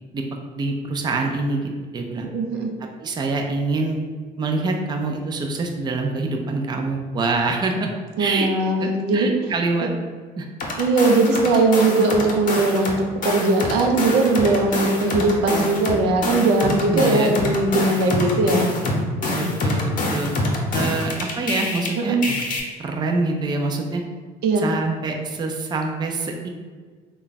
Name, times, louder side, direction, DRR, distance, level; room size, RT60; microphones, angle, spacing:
voice 1, 0.6-2.3 3.0-4.0 4.4-7.9 8.2-8.5 8.8-9.9 10.4-10.5 16.9-17.3 19.3-20.3 20.7-22.4 22.8-24.0 24.6-26.5, right 3 dB, 25° right, 2 dB, 0.4 m, -25 dB
voice 2, 2.2-2.7 8.2-9.3 9.8-9.9 10.8-18.7 22.0-22.2 24.4-24.7, right 2 dB, 85° right, 2 dB, 0.6 m, -19 dB
sound 1, 10.6-12.9 13.2-21.9 22.2-22.6, left 2 dB, 50° left, 0.8 m, -25 dB
3.3 x 2.3 x 3.9 m, 1.5 s
cardioid pair, 110°, 17 cm